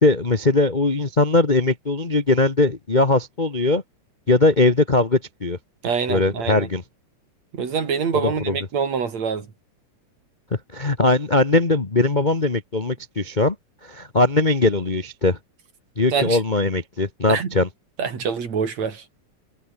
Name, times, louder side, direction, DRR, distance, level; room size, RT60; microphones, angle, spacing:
voice 1, 0.0-3.8 4.3-5.6 6.1-6.8 8.1-8.6 10.7-13.5 13.8-15.4 16.0-17.7, left 2 dB, 75° left, 0.4 m, -20 dB
voice 2, 5.8-6.7 7.5-9.5 16.1-16.4 17.3-17.5 18.0-19.0, right 6 dB, 60° right, 4.4 m, -25 dB
omnidirectional pair, 3.6 m